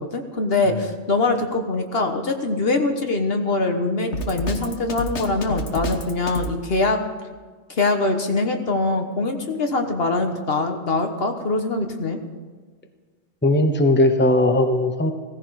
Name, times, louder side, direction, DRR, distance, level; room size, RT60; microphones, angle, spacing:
voice 1, 0.0-7.0 7.7-12.2, left 3 dB, 60° left, 5 dB, 1.5 m, -23 dB
Drum kit, 4.1-6.5, equal, 80° left, 1.6 m, -29 dB
voice 2, 13.4-15.1, left 1 dB, 10° left, 6 dB, 1.0 m, -18 dB
16.5 x 15.0 x 4.8 m, 1.5 s
omnidirectional pair, 1.2 m